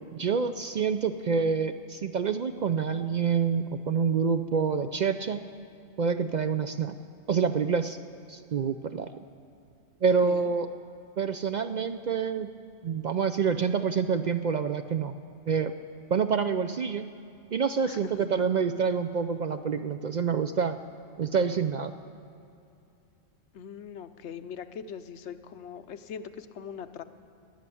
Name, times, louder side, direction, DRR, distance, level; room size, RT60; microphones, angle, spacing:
voice 1, 0.1-5.4 6.0-7.0 7.3-8.0 8.3-9.1 10.0-10.7 11.2-12.5 12.8-15.1 15.5-15.7 16.1-17.1 17.5-20.8 21.2-21.9, right 6 dB, 55° right, 9 dB, 0.5 m, -27 dB
voice 2, 17.9-18.4 23.5-27.0, left 7 dB, 85° left, 10 dB, 1.0 m, -41 dB
19.0 x 10.0 x 6.9 m, 2.6 s
omnidirectional pair, 1.1 m